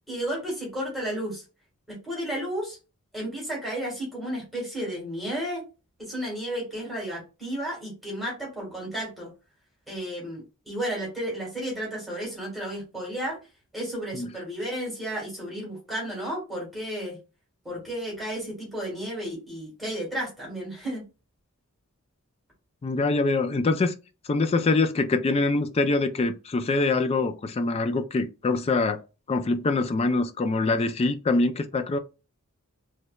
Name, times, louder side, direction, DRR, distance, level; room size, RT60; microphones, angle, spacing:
voice 1, 0.1-1.4 1.9-2.8 3.1-5.6 6.0-9.3 9.9-13.4 13.7-17.2 17.6-21.0, right 1 dB, ahead, 1.7 m, -33 dB
voice 2, 22.8-23.9 24.3-29.0 29.3-32.0, left 3 dB, 25° left, 0.3 m, -24 dB
3.2 x 3.0 x 2.3 m
head